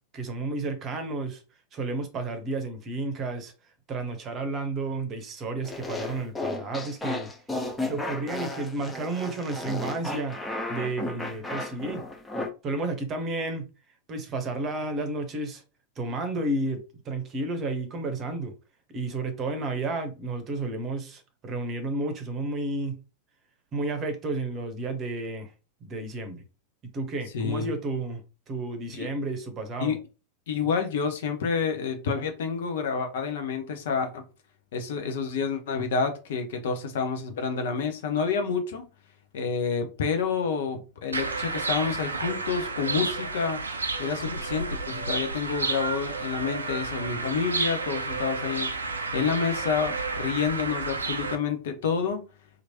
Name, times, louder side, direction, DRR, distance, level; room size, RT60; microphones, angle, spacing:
voice 1, 0.1-1.4 1.7-3.5 3.9-7.3 7.9-12.0 12.6-13.7 14.1-15.6 16.0-18.5 18.9-23.0 23.7-25.5 25.8-26.4 26.9-28.2 28.5-30.0, right 2 dB, 30° right, 0.8 m, -32 dB
sound 1, 5.6-12.5, left 2 dB, 10° left, 0.6 m, -34 dB
voice 2, 27.3-27.7 29.0-29.1 29.8-30.0 30.5-34.2 34.7-38.9 39.3-43.6 44.0-48.7 49.1-52.2, left 5 dB, 55° left, 0.6 m, -28 dB
sound 2, 41.1-51.4, right 3 dB, 75° right, 0.4 m, -31 dB
2.9 x 2.4 x 2.8 m
figure-of-eight pair, 90°, 0 cm